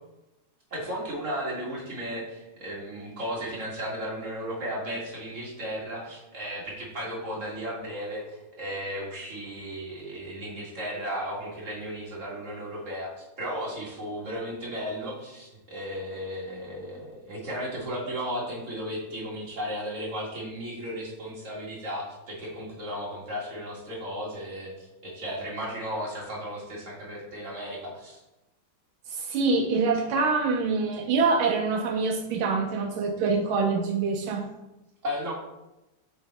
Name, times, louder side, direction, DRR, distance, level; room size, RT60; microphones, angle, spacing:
voice 1, 0.7-28.2 35.0-35.3, equal, 40° right, -4 dB, 2.1 m, -35 dB
voice 2, 29.1-34.5, right 4 dB, 80° right, 3 dB, 1.4 m, -25 dB
7.1 x 4.0 x 4.3 m, 0.97 s
omnidirectional pair, 2.3 m